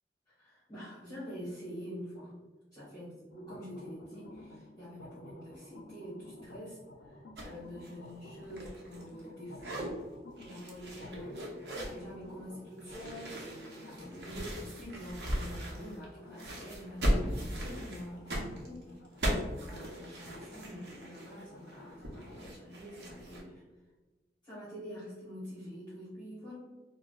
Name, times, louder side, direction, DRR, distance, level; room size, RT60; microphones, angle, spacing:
voice 1, 0.3-2.4 2.7-6.8 7.0-10.0 10.4-23.6 24.4-26.6, equal, 20° left, -11 dB, 1.1 m, -46 dB
sound 1, 3.3-22.5, left 2 dB, 85° left, 0.5 m, -53 dB
sound 2, 7.4-7.6 7.8-9.3 9.5-9.9 10.4-12.0 12.8-16.1 16.4-23.4, equal, 70° right, 0.7 m, -37 dB
4.5 x 2.0 x 2.3 m, 1.2 s
head